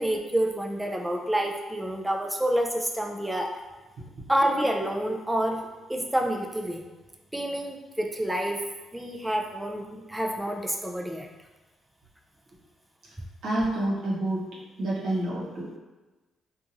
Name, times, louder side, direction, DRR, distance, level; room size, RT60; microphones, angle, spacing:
voice 1, 0.0-3.5 4.3-5.6 5.9-6.8 7.3-8.6 8.9-11.3, right 1 dB, 10° right, 1 dB, 0.4 m, -28 dB
voice 2, 13.4-14.5 14.8-15.8, right 1 dB, 70° right, -6 dB, 1.0 m, -28 dB
2.8 x 2.4 x 2.5 m, 1.2 s
cardioid pair, 90°, 0 cm